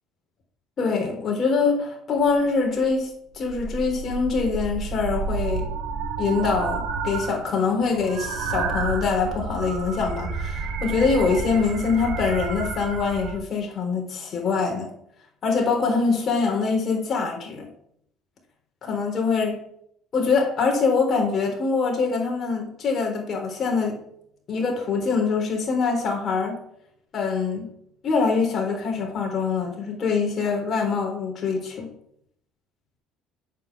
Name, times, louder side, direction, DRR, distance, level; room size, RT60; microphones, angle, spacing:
voice 1, 0.8-3.1 3.3-5.7 6.2-14.9 15.4-17.7 18.8-19.6 20.1-24.0 24.5-26.6 27.1-27.7 28.0-31.9, left 4 dB, 40° left, 1 dB, 3.7 m, -24 dB
sound 1, 2.2-2.3 2.7-3.0 3.3-7.4 7.7-13.4, right 4 dB, 75° right, 2.0 m, -30 dB
8.4 x 6.0 x 7.1 m, 0.72 s
cardioid pair, 110°, 0 cm